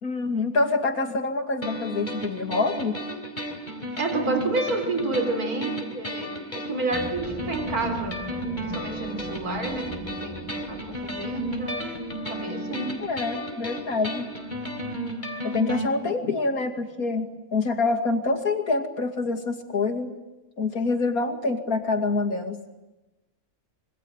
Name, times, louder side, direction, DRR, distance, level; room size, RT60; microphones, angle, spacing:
voice 1, 0.0-3.0 13.0-14.3 15.4-20.1 20.6-22.6, left 3 dB, 75° left, 5 dB, 2.9 m, -26 dB
sound 1, 1.6-15.9, right 1 dB, 30° left, 4.2 m, -33 dB
voice 2, 4.0-11.9 12.3-13.0, right 3 dB, 80° right, 6 dB, 4.3 m, -30 dB
sound 2, 6.9-14.2, right 1 dB, 5° left, 5.1 m, -42 dB
27.0 x 24.5 x 8.9 m, 1.1 s
omnidirectional pair, 1.5 m